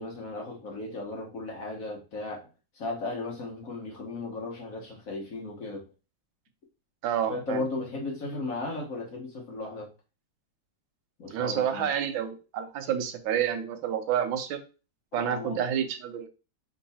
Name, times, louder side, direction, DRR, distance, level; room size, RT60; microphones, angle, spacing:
voice 1, 0.0-2.5 2.8-5.8 7.3-9.9 11.2-11.9 15.1-15.6, left 2 dB, 50° left, 1.2 m, -36 dB
voice 2, 7.0-7.6 11.3-14.6 15.1-16.3, right 9 dB, 80° right, 1.4 m, -29 dB
3.7 x 3.0 x 4.1 m
omnidirectional pair, 2.2 m